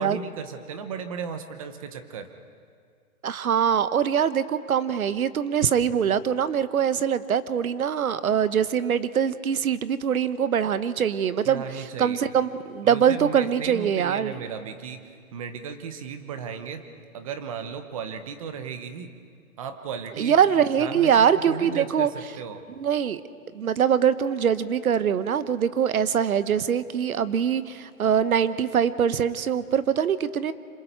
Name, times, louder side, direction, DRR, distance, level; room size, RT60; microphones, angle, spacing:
voice 1, 0.0-2.3 11.4-12.3 12.8-16.8 17.1-19.1 19.6-22.6, right 6 dB, 25° right, 8 dB, 1.0 m, -36 dB
voice 2, 3.2-11.6 12.0-14.3 20.2-22.1 22.8-23.2 23.5-30.5, right 8 dB, 75° right, 14 dB, 1.1 m, -23 dB
28.0 x 26.5 x 4.6 m, 2.1 s
hypercardioid pair, 165°, 43 cm